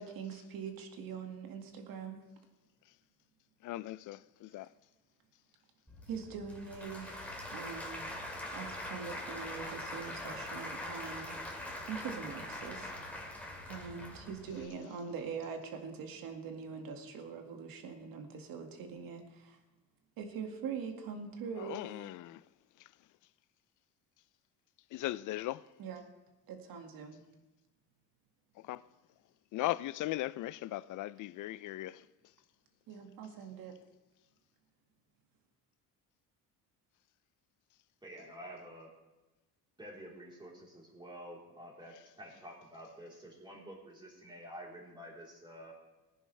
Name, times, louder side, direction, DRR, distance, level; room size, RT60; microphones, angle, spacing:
voice 1, 0.0-2.2 6.1-8.1 8.5-11.4 11.9-12.9 13.7-19.6 20.2-21.9 25.8-26.0 26.5-27.2 32.9-33.8, right 6 dB, 70° right, 2.0 m, -43 dB
voice 2, 3.6-4.7 21.6-22.4 22.8-22.9 24.9-25.7 28.6-28.8 29.5-32.0, left 16 dB, 55° left, 0.4 m, -38 dB
Applause / Crowd, 5.9-14.6, left 1 dB, 5° left, 2.3 m, -43 dB
voice 3, 38.0-38.9 39.8-45.7, equal, 10° right, 3.7 m, -49 dB
20.0 x 10.0 x 3.3 m
cardioid pair, 130°, 36 cm